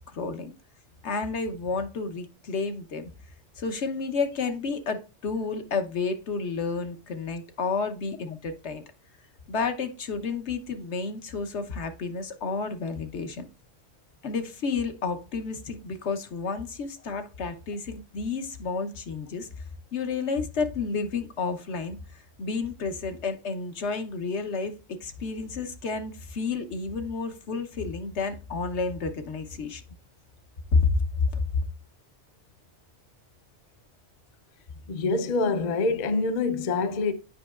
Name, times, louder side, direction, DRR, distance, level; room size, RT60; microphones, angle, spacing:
voice 1, 0.1-0.5 1.0-3.1 3.6-8.8 9.5-13.4 14.2-19.5 19.9-29.8 30.7-31.4, left 4 dB, 70° left, 1.2 m, -30 dB
voice 2, 34.9-37.1, left 3 dB, 45° left, 0.6 m, -25 dB
8.4 x 5.2 x 2.4 m
omnidirectional pair, 1.2 m